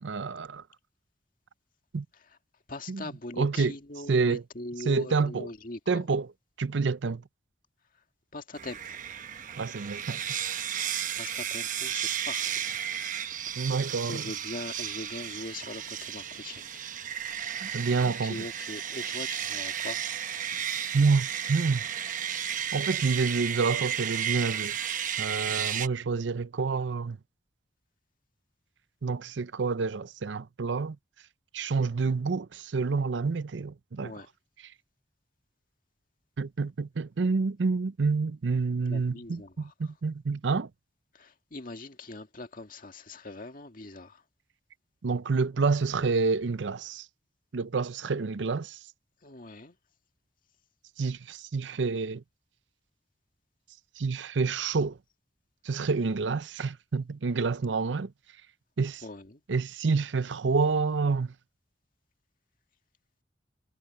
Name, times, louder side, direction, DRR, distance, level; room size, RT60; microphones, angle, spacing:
voice 1, 0.0-0.6 1.9-2.0 2.9-3.0 3.4-3.7 4.1-4.4 4.9-5.5 5.9-6.3 6.6-7.2 9.6-10.2 13.6-14.2 17.6-18.4 20.9-21.8 22.7-24.8 25.2-27.2 29.0-31.0 31.5-34.1 36.4-40.7 45.0-47.1 47.5-48.8 51.0-52.2 54.0-55.0 55.6-58.1 58.8-59.0 59.5-61.3, right 4 dB, 85° right, 0.6 m, -28 dB
voice 2, 2.7-6.1 8.3-9.0 11.2-12.6 13.5-13.8 14.0-16.8 17.1-20.3 34.0-34.3 38.9-39.9 41.1-44.2 49.2-49.8 59.0-59.4, left 2 dB, 50° left, 2.0 m, -42 dB
sound 1, 8.6-25.9, right 9 dB, 45° right, 1.0 m, -33 dB
head